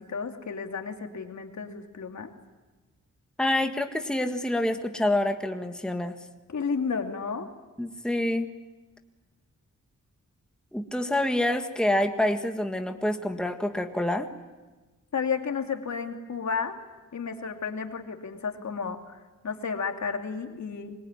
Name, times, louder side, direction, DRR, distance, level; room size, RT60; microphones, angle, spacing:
voice 1, 0.0-2.3 6.5-7.5 15.1-16.7 17.1-21.0, left 5 dB, 65° left, 4 dB, 2.8 m, -32 dB
voice 2, 3.4-6.1 7.8-8.5 10.7-14.3, left 1 dB, 5° left, 5 dB, 1.7 m, -27 dB
25.5 x 22.0 x 9.9 m, 1.2 s
wide cardioid pair, 95°, 31 cm